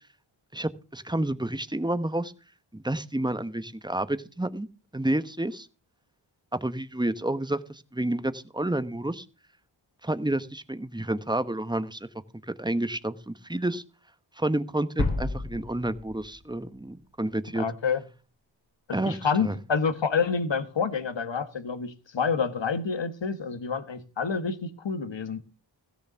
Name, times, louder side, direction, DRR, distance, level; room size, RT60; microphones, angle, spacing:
voice 1, 0.5-2.3 2.7-4.7 4.9-5.7 6.5-9.2 10.0-12.1 12.5-13.8 14.4-17.7 18.9-19.5, right 1 dB, 10° right, 0.9 m, -30 dB
sound 1, 15.0-16.9, left 2 dB, 45° left, 3.0 m, -31 dB
voice 2, 17.5-18.0 18.9-25.4, left 5 dB, 65° left, 1.6 m, -28 dB
16.0 x 7.0 x 6.8 m
wide cardioid pair, 85°, 47 cm